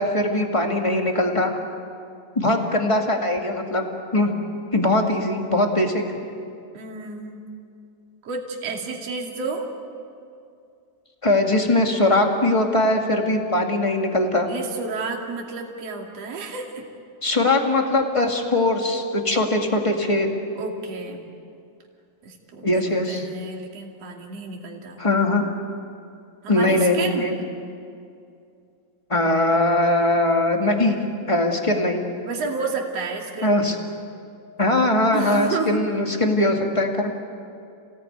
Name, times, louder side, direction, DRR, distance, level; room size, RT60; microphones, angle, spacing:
voice 1, 0.0-1.5 2.3-3.9 4.1-4.3 4.7-6.2 11.2-14.5 17.2-20.3 22.6-23.3 25.0-25.4 26.5-27.3 29.1-31.0 31.3-32.0 33.4-33.8 34.6-37.1, left 2 dB, 15° left, 2 dB, 1.4 m, -21 dB
voice 2, 6.7-7.4 8.2-9.7 14.5-16.9 20.6-21.3 22.2-25.0 26.4-27.3 32.3-33.6 35.1-35.8, right 4 dB, 50° right, 0 dB, 3.4 m, -31 dB
29.0 x 18.0 x 9.5 m, 2.5 s
omnidirectional pair, 3.9 m